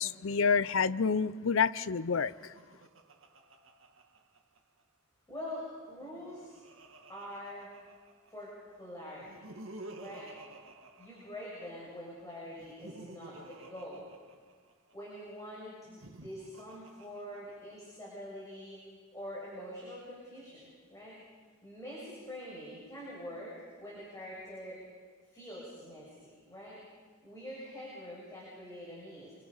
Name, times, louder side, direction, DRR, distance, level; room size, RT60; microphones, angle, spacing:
voice 1, 0.0-2.5, left 5 dB, 65° left, 16 dB, 0.6 m, -28 dB
Laughter, 2.1-4.8 5.9-8.5 9.2-11.9 12.5-14.9 15.8-17.9, right 2 dB, 70° right, 1.8 m, -52 dB
voice 2, 5.3-6.5 7.1-7.7 8.3-9.5 10.0-10.3 11.0-14.1 14.9-15.8 16.0-18.8 19.1-21.1 21.6-24.8 25.2-26.8 27.2-29.3, equal, 15° left, -6 dB, 6.8 m, -45 dB
28.0 x 26.0 x 5.6 m, 1.5 s
head